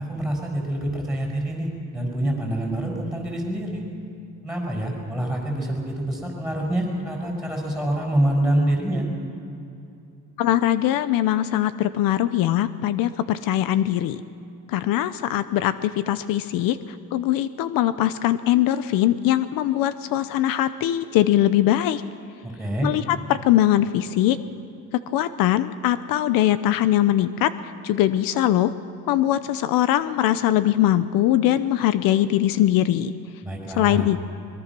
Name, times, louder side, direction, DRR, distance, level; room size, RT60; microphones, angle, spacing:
voice 1, 0.1-3.8 4.4-9.1 22.4-22.9 33.4-34.1, right 1 dB, ahead, -1 dB, 5.7 m, -26 dB
voice 2, 10.4-14.2 14.7-16.8 17.1-22.0 22.8-24.4 24.9-27.5 27.8-28.7 29.1-33.1 33.7-34.2, left 13 dB, 75° left, 13 dB, 0.8 m, -21 dB
24.0 x 22.0 x 6.1 m, 2.7 s
cardioid pair, 140°, 34 cm